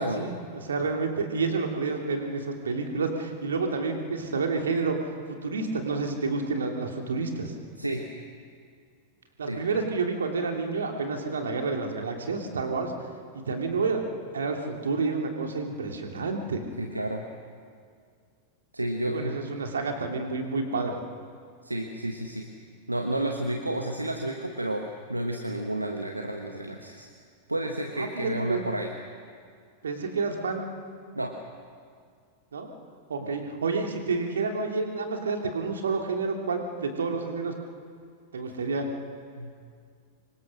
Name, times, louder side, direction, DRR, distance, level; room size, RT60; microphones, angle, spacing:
voice 1, 0.0-5.0 5.3-7.5 9.4-12.9 13.3-14.0 14.3-16.6 19.1-21.0 28.0-28.6 29.8-30.7 32.5-32.7 33.1-37.5 38.3-38.9, right 4 dB, 70° right, 3 dB, 2.8 m, -29 dB
voice 2, 16.8-17.2 18.7-19.4 21.6-22.5 22.9-27.1 27.5-28.9 31.1-31.4 33.2-33.3 39.3-39.5, right 1 dB, 85° right, 3 dB, 1.5 m, -31 dB
26.5 x 23.5 x 6.4 m, 2.1 s
figure-of-eight pair, 90°, 0 cm